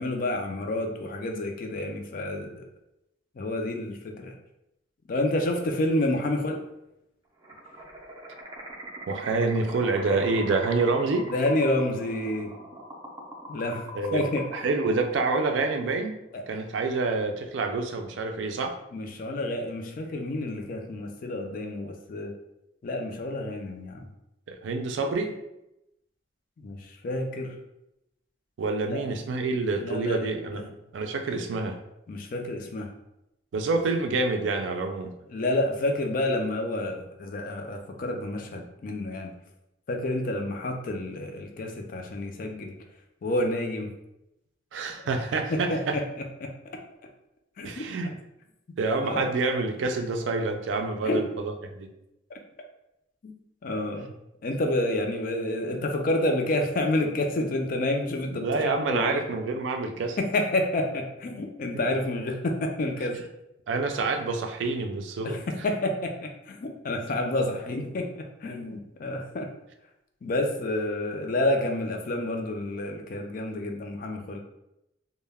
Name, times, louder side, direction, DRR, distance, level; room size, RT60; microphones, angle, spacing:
voice 1, 0.0-2.6 3.4-4.3 5.1-6.6 11.3-12.5 13.5-14.4 16.3-16.4 18.9-22.3 22.8-24.1 26.6-27.5 28.9-29.0 29.8-30.6 32.1-32.9 35.3-39.3 39.9-42.7 43.2-43.9 45.5-46.5 47.6-47.8 48.7-49.3 51.0-51.2 52.3-52.4 53.2-53.3 53.6-54.1 54.4-59.2 60.2-63.2 65.2-69.5 70.2-74.4, left 1 dB, 50° left, 3 dB, 0.4 m, -29 dB
sound 1, 7.4-15.9, right 1 dB, 25° right, 0.4 m, -42 dB
voice 2, 9.1-11.3 13.9-14.2 14.5-16.2 16.5-18.7 24.5-25.3 28.6-30.7 30.9-31.8 33.5-35.2 44.7-46.0 47.6-48.1 48.8-51.9 58.3-60.2 63.7-65.4, right 3 dB, 85° right, 5 dB, 0.4 m, -27 dB
2.2 x 2.1 x 3.3 m, 0.88 s
head